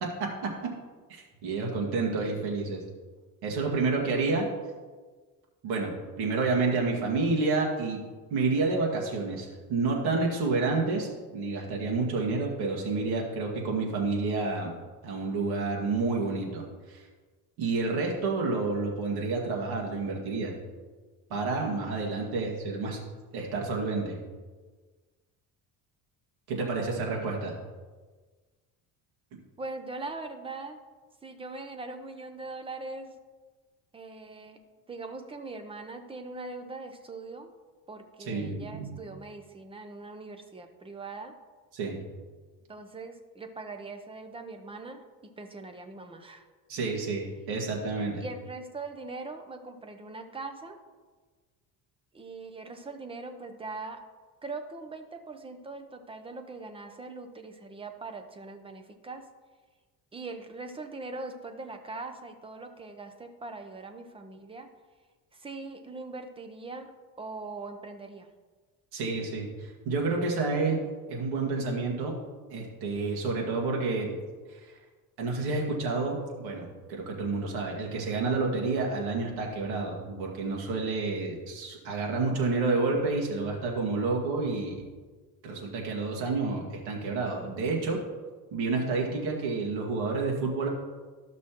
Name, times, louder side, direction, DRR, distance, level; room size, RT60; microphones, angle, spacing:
voice 1, 0.0-0.5 1.1-2.8 3.4-4.5 5.6-8.0 8.3-11.1 11.3-14.7 15.0-17.0 17.6-20.5 21.3-23.0 23.3-24.2 26.5-27.6 38.3-38.9 41.7-42.0 46.7-48.3 68.9-70.8 71.1-72.2 72.5-74.1 74.5-74.7 75.2-84.8 85.4-88.0 88.5-90.7, right 3 dB, 85° right, -1 dB, 2.0 m, -29 dB
voice 2, 26.6-27.3 29.6-30.8 31.2-33.1 33.9-34.6 34.9-37.5 37.9-41.4 42.7-46.5 48.2-50.8 52.1-54.0 54.4-59.3 60.1-64.7 65.3-66.9 67.2-68.3, right 3 dB, 15° right, 7 dB, 0.7 m, -41 dB
13.5 x 6.1 x 3.0 m, 1.4 s
cardioid pair, 135°, 37 cm